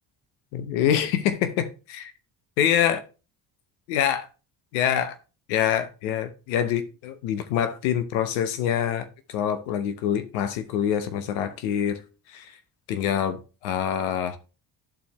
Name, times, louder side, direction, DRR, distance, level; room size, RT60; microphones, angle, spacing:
voice 1, 0.5-2.1 2.6-3.0 3.9-4.3 4.7-5.2 5.5-12.0 12.3-12.5 12.9-13.4 13.6-14.4, left 9 dB, 90° left, 0.9 m, -25 dB
12.5 x 4.3 x 3.0 m
supercardioid pair, 60°, 50 cm